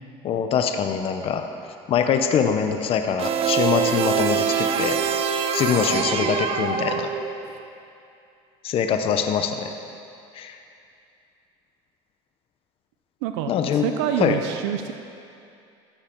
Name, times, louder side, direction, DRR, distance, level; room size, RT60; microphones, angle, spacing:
voice 1, 0.2-1.5 1.9-5.0 5.5-7.1 8.6-9.7 10.3-10.6 13.5-13.9 14.2-14.4, left 7 dB, 45° left, 6 dB, 0.7 m, -23 dB
sound 1, 3.2-7.5, right 7 dB, 50° right, 0.7 m, -24 dB
voice 2, 13.2-13.5 13.8-14.9, right 10 dB, 90° right, 7 dB, 0.5 m, -26 dB
13.5 x 7.4 x 4.5 m, 2.5 s
supercardioid pair, 110°, 13 cm